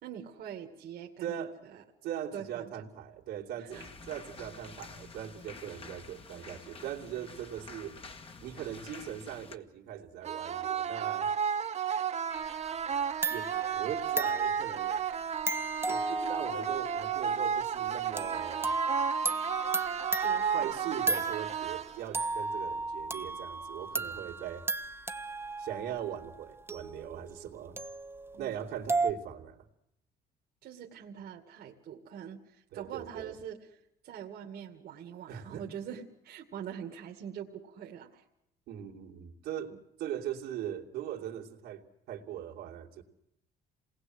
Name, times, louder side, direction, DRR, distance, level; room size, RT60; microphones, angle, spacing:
voice 1, 0.0-1.8 2.3-2.9 3.6-3.8 6.4-6.5 20.2-20.7 28.3-28.6 30.6-33.6 34.0-38.2, right 8 dB, 65° right, 1 dB, 2.3 m, -44 dB
voice 2, 1.2-1.6 2.0-7.9 8.4-11.3 13.3-15.0 15.9-18.7 20.5-24.7 25.6-27.8 28.4-29.7 32.7-33.4 35.3-35.7 38.7-43.0, right 10 dB, 80° right, 0 dB, 2.9 m, -40 dB
sound 1, 3.7-9.6, left 4 dB, 35° left, 1.7 m, -49 dB
sound 2, 10.2-22.2, right 7 dB, 40° right, 1.0 m, -33 dB
sound 3, 12.3-12.9 13.2-21.7 22.1-29.1, right 3 dB, 15° right, 1.0 m, -35 dB
27.0 x 19.5 x 8.0 m, 0.82 s
cardioid pair, 110°, 17 cm